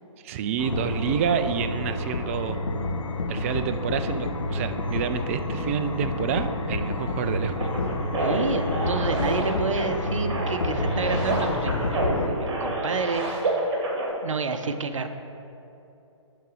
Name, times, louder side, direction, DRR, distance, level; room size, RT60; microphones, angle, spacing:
voice 1, 0.2-2.6 3.3-7.7, right 7 dB, 25° right, 10 dB, 0.3 m, -28 dB
sound 1, 0.6-12.3, left 2 dB, 80° left, 0.9 m, -29 dB
sound 2, 7.6-14.1, right 2 dB, 50° right, 1.8 m, -29 dB
voice 2, 8.2-13.4 14.2-15.1, right 4 dB, 75° right, 7 dB, 0.6 m, -29 dB
11.0 x 4.0 x 4.8 m, 2.8 s
figure-of-eight pair, 135°, 16 cm